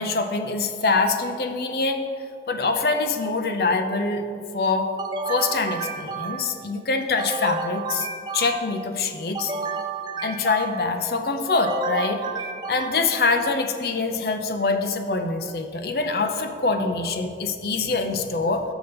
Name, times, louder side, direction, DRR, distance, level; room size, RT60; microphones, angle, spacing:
voice 1, 0.0-2.0 2.5-4.2 4.5-4.9 5.3-8.1 8.3-9.5 10.2-12.2 12.7-18.6, left 3 dB, 60° left, 6 dB, 0.6 m, -24 dB
sound 1, 5.0-6.6 7.2-8.9 9.3-11.0 11.5-13.2, right 4 dB, 25° right, 0.3 m, -31 dB
6.7 x 6.1 x 5.2 m, 2.3 s
head